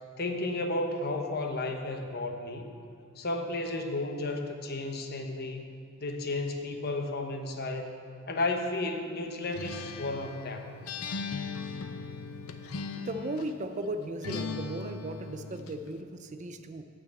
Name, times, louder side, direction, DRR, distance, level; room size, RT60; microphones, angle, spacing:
voice 1, 0.2-2.7 3.2-5.7 6.0-7.9 8.3-10.8, left 2 dB, 50° left, 4 dB, 0.9 m, -33 dB
Acoustic guitar, 9.5-13.6 14.2-15.8, left 4 dB, 85° left, 0.6 m, -38 dB
voice 2, 13.0-16.8, right 1 dB, 35° right, 8 dB, 0.5 m, -36 dB
8.9 x 6.1 x 8.0 m, 2.4 s
head